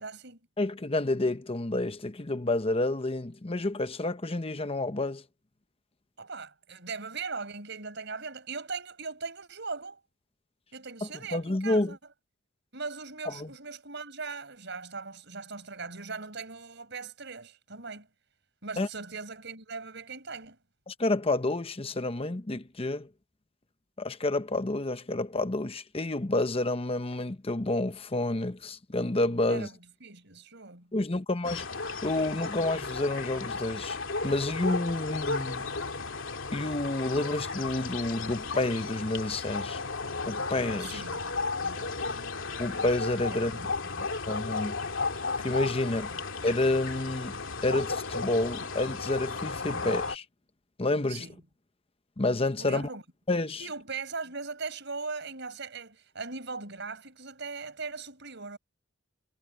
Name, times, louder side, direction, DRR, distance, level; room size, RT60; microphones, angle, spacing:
voice 1, 0.0-0.4 6.2-10.0 10.7-12.0 12.7-18.1 18.6-20.6 29.5-30.9 40.8-42.1 43.3-44.1 46.1-46.3 49.7-50.0 51.1-51.4 52.6-53.0 53.6-58.6, right 4 dB, 60° right, 6.1 m, -40 dB
voice 2, 0.6-5.2 11.3-12.0 13.4-13.5 18.8-18.9 20.9-23.1 24.0-29.7 30.9-31.7 32.0-34.0 34.2-35.7 36.5-39.8 40.3-41.0 42.6-43.6 44.3-44.8 45.4-46.1 46.4-47.3 47.6-50.2 50.8-51.2 52.2-52.9 53.3-53.6, left 2 dB, 30° left, 0.9 m, -29 dB
sound 1, 31.4-50.2, left 4 dB, 70° left, 2.8 m, -34 dB
head